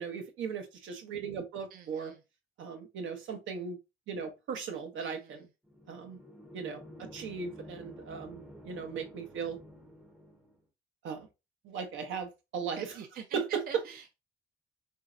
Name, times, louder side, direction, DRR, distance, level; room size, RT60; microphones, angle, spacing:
voice 1, 0.0-2.1 2.6-3.8 4.1-5.5 5.9-6.2 6.5-9.6 11.0-11.3 11.6-12.9 13.3-13.6, right 6 dB, 75° right, 0.8 m, -37 dB
voice 2, 1.7-2.2 5.0-5.5 12.8-14.2, right 6 dB, 50° right, 0.5 m, -46 dB
sound 1, 5.6-10.6, left 1 dB, 5° right, 0.6 m, -51 dB
3.1 x 2.7 x 2.4 m
cardioid pair, 90°, 20 cm